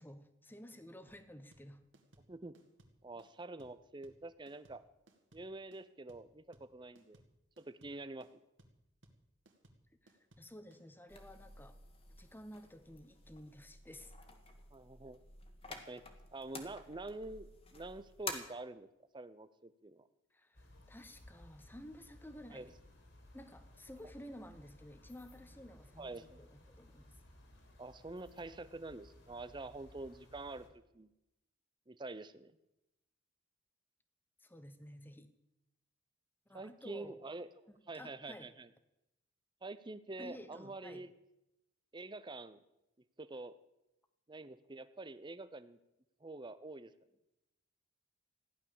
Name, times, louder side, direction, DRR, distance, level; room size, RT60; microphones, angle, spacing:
voice 1, 0.0-1.8 10.0-11.8 12.2-14.2 20.3-22.8 23.3-27.1 34.4-35.3 36.5-37.2 37.7-38.5 40.2-41.1, left 1 dB, 10° left, 10 dB, 1.0 m, -53 dB
sound 1, 1.1-10.8, right 1 dB, 60° right, 2.1 m, -65 dB
voice 2, 3.0-4.8 5.3-7.2 7.6-8.4 14.7-15.2 15.9-16.0 16.3-18.9 19.1-20.1 22.5-22.7 26.0-26.4 27.8-31.1 31.9-32.5 36.5-37.5 37.9-38.7 39.6-41.1 41.9-42.6 43.2-43.6 44.3-45.8 46.2-46.9, right 2 dB, 20° right, 13 dB, 0.6 m, -47 dB
sound 2, 11.1-18.3, left 4 dB, 30° left, 1.7 m, -50 dB
sound 3, 20.5-30.7, left 1 dB, 60° left, 3.1 m, -60 dB
15.0 x 11.0 x 7.1 m, 0.90 s
head